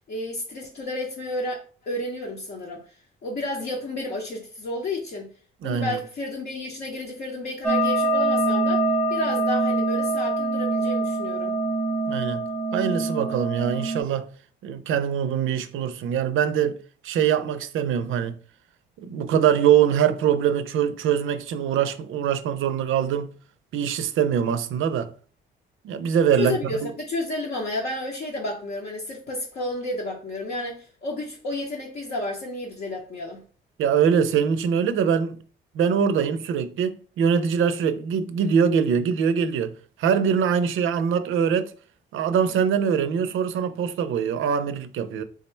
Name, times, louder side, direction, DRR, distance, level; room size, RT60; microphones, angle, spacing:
voice 1, 0.1-2.8 3.2-5.3 5.6-11.6 26.4-33.4, left 1 dB, 55° left, 0.7 m, -31 dB
voice 2, 5.6-6.0 12.1-12.4 12.7-14.3 14.6-16.8 17.0-18.4 19.0-23.3 23.7-25.1 25.8-26.9 33.8-35.4 35.7-39.7 40.0-41.7 42.1-45.2, right 8 dB, 80° right, 0.4 m, -23 dB
sound 1, 7.6-14.0, right 2 dB, 5° left, 0.8 m, -24 dB
3.6 x 2.1 x 4.3 m
cardioid pair, 155°, 20 cm